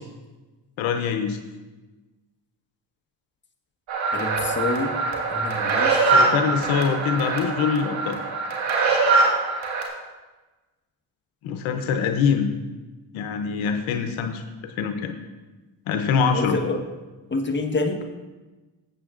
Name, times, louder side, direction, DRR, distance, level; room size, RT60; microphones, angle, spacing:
voice 1, 0.8-1.4 6.1-8.2 11.4-12.5 13.1-15.1 15.9-16.6, left 6 dB, 80° left, 6 dB, 0.8 m, -24 dB
sound 1, 3.9-9.8, right 3 dB, 75° right, 1.9 m, -23 dB
voice 2, 4.1-4.9 5.3-6.1 16.3-16.8 17.3-18.0, left 2 dB, 25° left, 3 dB, 1.3 m, -27 dB
14.5 x 8.0 x 2.5 m, 1.2 s
supercardioid pair, 65°, 47 cm